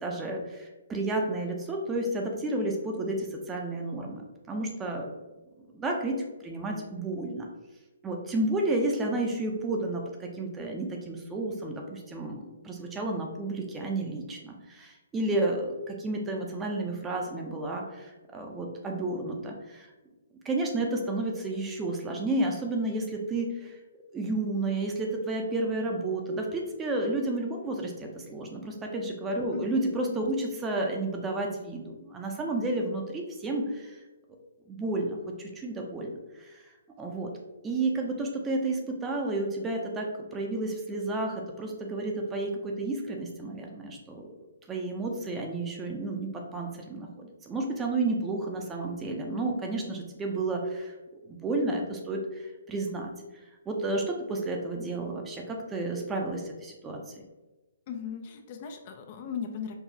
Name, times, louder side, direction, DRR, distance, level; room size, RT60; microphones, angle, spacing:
voice 1, 0.0-5.1 5.7-7.5 8.0-19.9 20.4-23.8 24.1-34.0 34.7-36.7 37.0-37.3 37.6-44.3 44.7-51.0 51.3-53.1 53.7-57.1, right 2 dB, 15° right, 1 dB, 0.6 m, -31 dB
voice 2, 29.5-30.2 57.9-59.7, left 7 dB, 40° left, 5 dB, 0.4 m, -37 dB
4.6 x 2.3 x 2.7 m, 1.1 s
hypercardioid pair, 140°, 0 cm